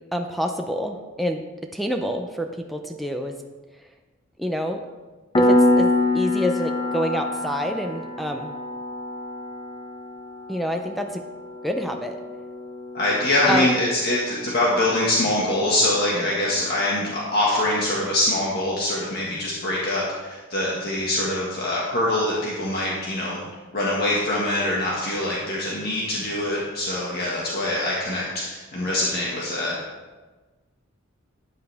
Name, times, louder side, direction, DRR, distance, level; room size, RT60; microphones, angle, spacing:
voice 1, 0.1-1.4 1.7-3.3 4.4-4.8 5.4-8.5 10.5-11.2 11.6-12.2 13.5-13.7 16.1-16.4, equal, ahead, 4 dB, 0.6 m, -27 dB
Piano, 5.4-15.7, left 1 dB, 25° left, 0.9 m, -26 dB
voice 2, 12.9-23.4 23.7-29.8, left 1 dB, 50° left, -5 dB, 1.8 m, -24 dB
13.0 x 9.0 x 3.5 m, 1.3 s
head